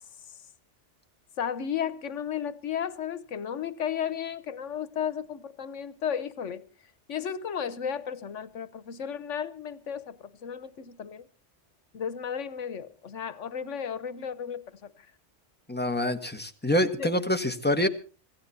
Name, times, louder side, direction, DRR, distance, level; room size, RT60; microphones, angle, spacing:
voice 1, 1.4-6.6 7.1-11.3 11.9-14.9 17.0-17.1, left 8 dB, 85° left, 1.4 m, -34 dB
voice 2, 15.7-17.9, left 1 dB, 10° left, 1.4 m, -26 dB
26.0 x 15.5 x 2.8 m
omnidirectional pair, 1.2 m